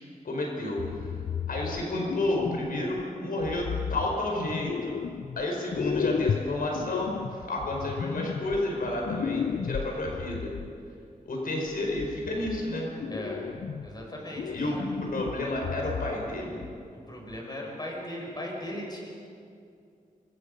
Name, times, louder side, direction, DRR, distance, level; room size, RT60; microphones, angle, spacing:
voice 1, 0.2-1.2 1.5-4.9 5.4-10.5 11.2-12.9 14.5-14.8 15.1-16.6, left 1 dB, 80° left, 0 dB, 5.1 m, -31 dB
sound 1, 0.8-3.0 3.4-5.4 5.7-10.7 11.7-12.6 13.0-14.0 14.4-16.4 16.6-16.8 17.3-17.4, left 6 dB, 65° left, 0.6 m, -34 dB
voice 2, 13.1-13.4 13.8-14.7 16.9-19.1, left 1 dB, 30° left, -1 dB, 6.0 m, -38 dB
26.5 x 24.5 x 5.4 m, 2.4 s
wide cardioid pair, 135°, 15 cm